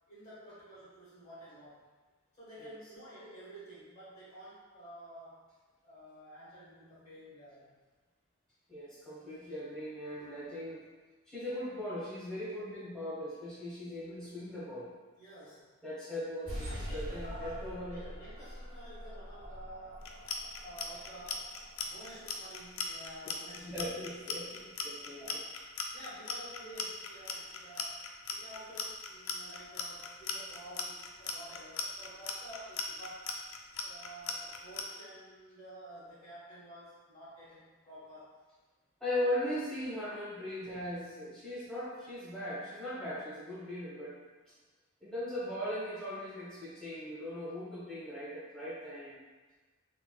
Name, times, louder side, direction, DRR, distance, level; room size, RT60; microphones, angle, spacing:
voice 1, 0.1-1.9 2.3-5.4 5.8-7.7 15.2-15.6 16.6-20.1 20.6-21.5 21.8-23.8 25.2-25.5 25.9-33.3 33.8-38.3, right 1 dB, 30° left, -10 dB, 1.2 m, -50 dB
voice 2, 8.7-10.8 11.3-14.9 15.8-18.0 23.6-25.2 39.0-44.1 45.0-49.2, left 1 dB, 5° left, -13 dB, 1.0 m, -39 dB
sound 1, 16.5-23.6, equal, 40° right, 1.1 m, -45 dB
Clock, 20.0-34.8, left 6 dB, 65° left, 0.3 m, -38 dB
3.2 x 3.2 x 2.2 m, 1.3 s
head